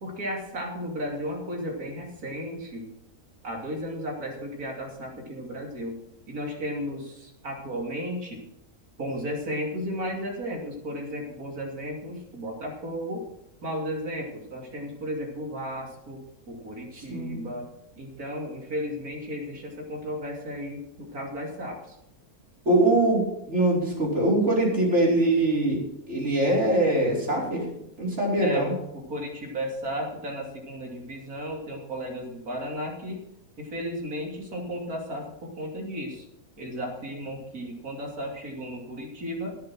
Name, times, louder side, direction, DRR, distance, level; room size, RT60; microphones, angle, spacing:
voice 1, 0.0-2.9 3.4-6.0 6.3-8.4 9.0-13.2 13.6-16.2 16.5-17.7 18.0-22.0 28.4-28.7 28.9-33.2 33.6-36.3 36.6-39.6, equal, 70° right, 0 dB, 3.3 m, -34 dB
voice 2, 17.0-17.4 22.7-27.6 28.0-28.7, right 1 dB, 45° right, -4 dB, 5.2 m, -23 dB
17.0 x 7.0 x 6.2 m, 0.81 s
omnidirectional pair, 1.6 m